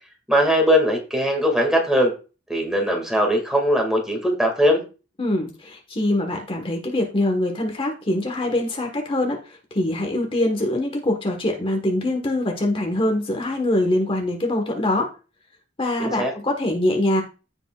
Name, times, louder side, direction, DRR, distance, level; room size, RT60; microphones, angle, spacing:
voice 1, 0.3-2.1 2.5-4.8 16.0-16.3, equal, 5° right, 2 dB, 2.1 m, -20 dB
voice 2, 5.2-15.1 15.8-17.2, left 1 dB, 30° left, 2 dB, 1.4 m, -23 dB
15.5 x 5.4 x 2.4 m, 0.33 s
head